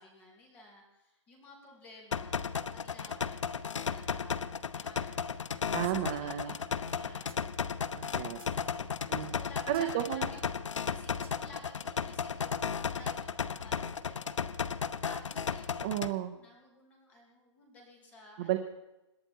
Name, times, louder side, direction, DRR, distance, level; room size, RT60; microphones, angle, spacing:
voice 1, 0.0-2.4 2.7-3.5 3.7-5.2 5.6-7.4 8.3-15.8 16.3-18.5, left 1 dB, 10° left, 0 dB, 2.9 m, -54 dB
sound 1, 2.1-16.1, left 6 dB, 75° left, 1.0 m, -35 dB
voice 2, 5.7-6.5 7.9-8.4 9.1-9.3 9.7-10.3 15.8-16.3 18.4-18.6, right 12 dB, 10° right, 6 dB, 0.4 m, -32 dB
sound 2, 5.8-6.0 6.3-6.4 7.3-7.4 8.0-8.6 9.7-9.9 11.2-11.4, right 6 dB, 50° right, 8.0 m, -54 dB
26.5 x 11.0 x 4.5 m, 0.98 s
hypercardioid pair, 180°, 16 cm